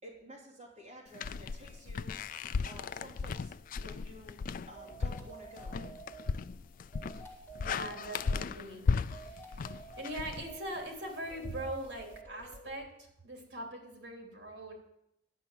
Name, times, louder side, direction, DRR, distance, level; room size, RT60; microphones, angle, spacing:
voice 1, 0.0-2.2 2.6-3.5 3.8-4.4 4.6-5.9 6.2-6.7, equal, 35° right, -5 dB, 3.4 m, -52 dB
sound 1, 1.1-11.0, left 5 dB, 50° left, 0.3 m, -36 dB
sound 2, 4.7-6.3 6.9-8.4 9.1-10.6 11.3-12.8, right 3 dB, 15° left, 2.2 m, -50 dB
voice 2, 7.1-8.9 9.2-14.7, right 1 dB, 65° right, 1 dB, 3.0 m, -42 dB
11.0 x 5.9 x 8.9 m, 0.81 s
head